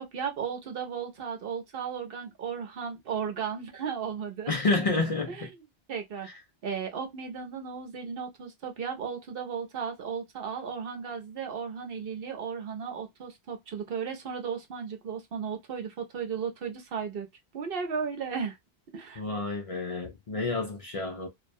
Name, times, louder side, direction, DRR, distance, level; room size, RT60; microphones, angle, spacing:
voice 1, 0.0-4.6 5.3-5.5 5.9-6.3 6.6-17.3 17.5-18.6 18.9-19.2, right 6 dB, 65° right, 0.9 m, -35 dB
voice 2, 4.5-5.5 6.2-6.3 19.2-21.3, left 3 dB, 45° left, 0.5 m, -29 dB
2.4 x 2.1 x 2.5 m
omnidirectional pair, 1.1 m